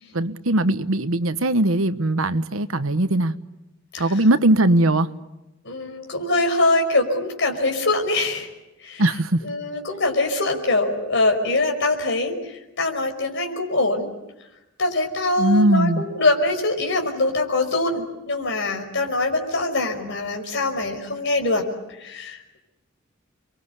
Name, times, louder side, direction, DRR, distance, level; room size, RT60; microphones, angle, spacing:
voice 1, 0.1-3.3 4.0-5.1 9.0-9.4 15.4-16.0, right 1 dB, 85° right, 1.3 m, -20 dB
voice 2, 5.6-8.5 8.8-9.0 9.4-14.1 14.8-21.7 22.0-22.6, left 2 dB, 60° left, 5.4 m, -23 dB
29.0 x 23.5 x 8.2 m
head